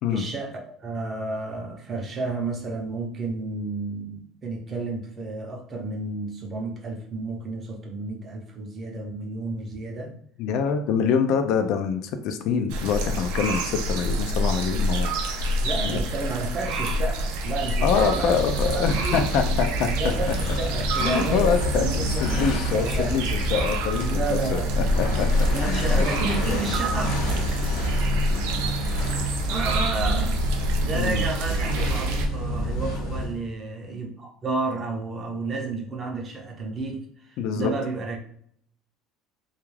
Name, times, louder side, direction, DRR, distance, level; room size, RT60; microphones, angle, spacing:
voice 1, 0.1-10.1 15.6-19.2 20.0-23.2 24.0-24.8 25.5-27.1 29.5-38.2, right 3 dB, 30° right, 1 dB, 0.6 m, -31 dB
voice 2, 10.4-16.0 17.8-19.9 21.0-21.9 22.2-24.6 25.0-25.9 30.9-31.3 37.4-37.7, left 6 dB, 60° left, 7 dB, 0.3 m, -25 dB
sound 1, 12.7-32.3, equal, 85° right, 0.4 m, -27 dB
sound 2, 17.7-33.5, right 1 dB, 90° left, 0.7 m, -29 dB
2.3 x 2.3 x 3.1 m, 0.65 s
cardioid pair, 140°, 0 cm